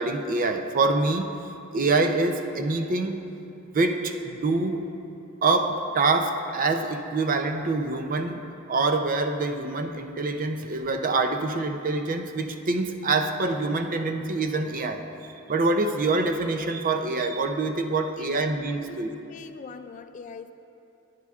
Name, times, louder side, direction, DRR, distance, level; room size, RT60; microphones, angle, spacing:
voice 1, 0.0-1.4 1.7-3.2 3.7-4.8 5.4-15.0 15.5-19.1, right 3 dB, 40° right, 6 dB, 0.5 m, -25 dB
voice 2, 18.0-18.4 18.8-20.5, left 5 dB, 35° left, 9 dB, 0.3 m, -43 dB
16.5 x 9.6 x 2.4 m, 2.8 s
head